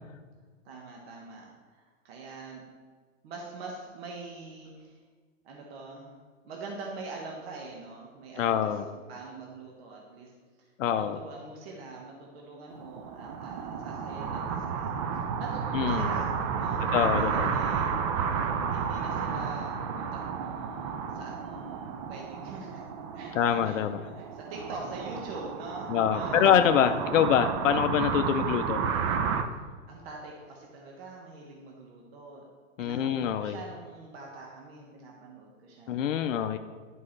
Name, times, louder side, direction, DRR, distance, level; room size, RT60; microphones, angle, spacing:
voice 1, 0.6-2.6 3.2-5.0 5.4-6.1 6.4-8.8 9.1-10.3 10.6-18.3 18.7-22.9 23.1-27.2 29.9-32.4 32.8-36.0, right 3 dB, 50° right, -1 dB, 1.5 m, -44 dB
voice 2, 8.4-8.8 10.8-11.2 15.7-16.1 16.9-17.6 23.3-24.0 25.9-28.8 32.8-33.6 35.9-36.6, left 9 dB, 75° left, 8 dB, 0.6 m, -25 dB
sound 1, 12.7-29.4, right 6 dB, 25° right, 0.3 m, -32 dB
11.0 x 5.4 x 3.2 m, 1.5 s
hypercardioid pair, 135°, 38 cm